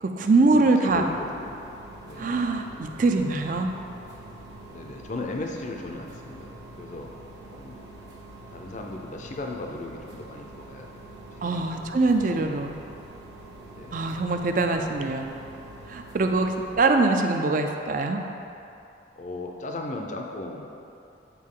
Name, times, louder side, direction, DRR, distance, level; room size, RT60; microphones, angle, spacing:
voice 1, 0.0-1.0 2.2-3.7 11.4-12.8 13.9-15.3 15.9-18.2, right 3 dB, 45° right, 5 dB, 0.4 m, -23 dB
voice 2, 0.5-1.6 2.1-2.4 4.7-6.5 6.8-7.1 7.5-7.8 8.5-11.1 11.3-12.0 12.3-12.5 13.7-14.1 19.2-20.7, left 2 dB, 40° left, 1 dB, 0.5 m, -37 dB
sound 1, 0.9-16.8, right 1 dB, 70° right, 1.3 m, -45 dB
8.3 x 4.3 x 3.7 m, 2.7 s
head